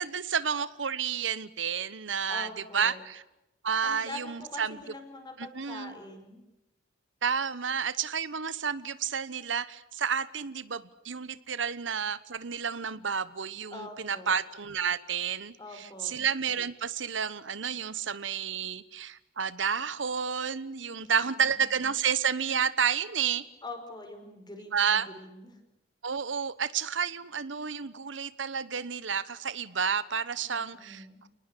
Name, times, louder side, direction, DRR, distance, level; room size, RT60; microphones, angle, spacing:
voice 1, 0.0-2.5 2.7-3.2 3.6-4.8 5.4-6.0 7.2-23.4 24.7-25.1 26.0-31.3, right 7 dB, 80° right, 16 dB, 1.1 m, -30 dB
voice 2, 2.3-3.0 3.8-6.4 13.7-14.3 15.6-16.2 20.9-21.6 23.6-25.6 30.4-31.2, left 2 dB, 25° left, 6 dB, 5.5 m, -44 dB
28.5 x 19.5 x 8.4 m, 0.92 s
head